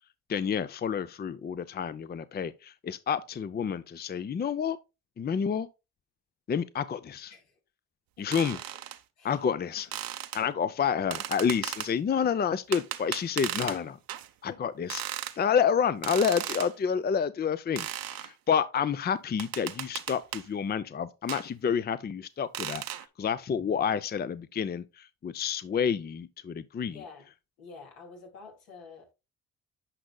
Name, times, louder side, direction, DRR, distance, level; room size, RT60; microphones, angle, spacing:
voice 1, 0.3-4.8 5.2-5.7 6.5-7.3 8.2-8.6 9.2-9.9 10.3-13.9 14.4-15.0 15.4-22.8 23.2-27.0, left 7 dB, 25° left, 0.5 m, -29 dB
sound 1, 8.3-9.0 9.9-10.4 11.1-11.9 12.7-13.8 14.1-14.3 14.9-15.4 16.0-16.7 17.8-18.3 19.4-20.5 21.3-21.5 22.5-23.0, right 12 dB, 70° right, 0.8 m, -36 dB
voice 2, 9.2-9.8 11.0-11.2 13.6-13.7 14.5-14.6 26.9-27.3 27.6-29.1, left 4 dB, 85° left, 2.7 m, -49 dB
10.0 x 5.2 x 2.2 m
supercardioid pair, 60°, 36 cm